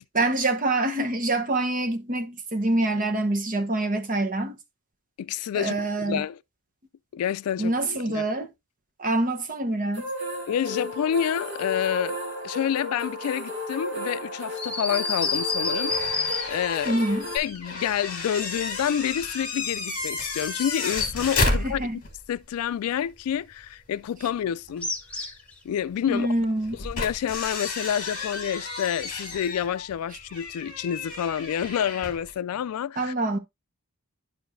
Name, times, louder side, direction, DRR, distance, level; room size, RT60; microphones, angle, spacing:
voice 1, 0.1-4.6 5.5-6.2 7.6-8.5 9.0-10.1 16.8-17.3 21.5-22.0 26.1-26.8 33.0-33.4, right 2 dB, 35° right, 1.0 m, -26 dB
voice 2, 5.2-5.8 6.0-6.4 7.1-8.2 10.5-12.2 12.4-17.0 17.3-21.8 22.3-24.9 25.2-25.3 25.6-26.3 26.8-33.1, left 9 dB, 80° left, 0.3 m, -28 dB
sound 1, 9.9-17.4, left 1 dB, 55° right, 2.1 m, -34 dB
sound 2, 14.6-16.9 24.8-25.5, left 4 dB, 5° left, 1.0 m, -28 dB
sound 3, 15.7-22.2 22.6-22.7 24.7-24.8 26.6-32.3, left 3 dB, 40° left, 2.7 m, -32 dB
11.0 x 4.8 x 2.6 m
head